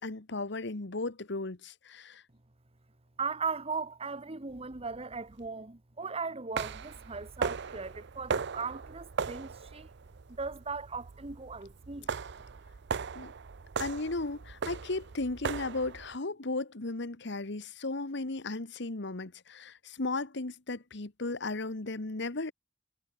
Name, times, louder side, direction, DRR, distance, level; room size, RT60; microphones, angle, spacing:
voice 1, 0.0-2.2 13.1-13.3 13.8-22.5, left 2 dB, 65° left, 1.4 m, -35 dB
voice 2, 3.2-9.9 10.3-12.1, right 4 dB, 30° right, 1.3 m, -38 dB
sound 1, 4.5-5.5 6.5-16.2, right 5 dB, 65° right, 0.6 m, -38 dB
head